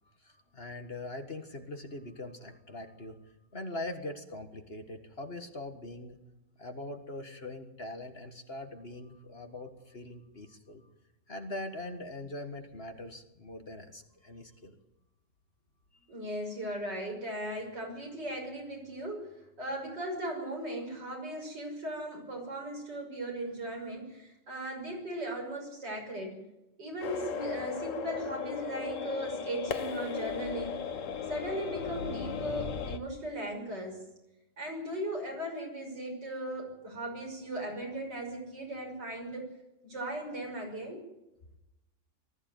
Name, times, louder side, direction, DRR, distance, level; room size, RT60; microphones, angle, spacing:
voice 1, 0.2-6.2 6.6-10.9 11.3-14.8, left 2 dB, 35° left, 6 dB, 1.8 m, -42 dB
voice 2, 16.1-19.3 19.6-26.4 26.8-30.8 31.3-34.0 34.6-39.5 39.8-41.0, right 1 dB, 80° right, 1 dB, 6.7 m, -37 dB
sound 1, 27.0-33.0, left 7 dB, 50° left, 1.3 m, -36 dB
19.5 x 14.0 x 9.4 m, 0.92 s
omnidirectional pair, 1.8 m